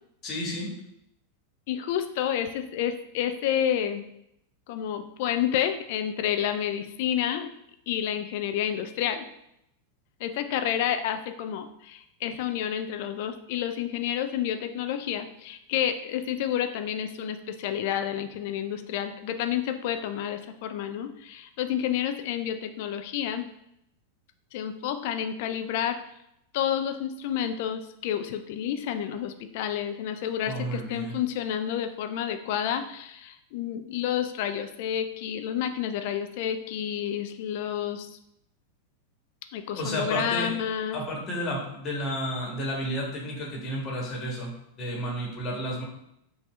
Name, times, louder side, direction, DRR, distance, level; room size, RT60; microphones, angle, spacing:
voice 1, 0.2-0.7 30.5-31.2 39.7-40.5 40.9-45.8, equal, 30° left, -2 dB, 1.5 m, -31 dB
voice 2, 1.7-4.0 4.7-7.5 7.9-9.3 10.2-23.4 24.5-26.0 26.5-38.1 39.5-41.0, left 10 dB, 50° left, 8 dB, 0.4 m, -30 dB
5.7 x 2.7 x 3.3 m, 0.78 s
figure-of-eight pair, 90°, 0 cm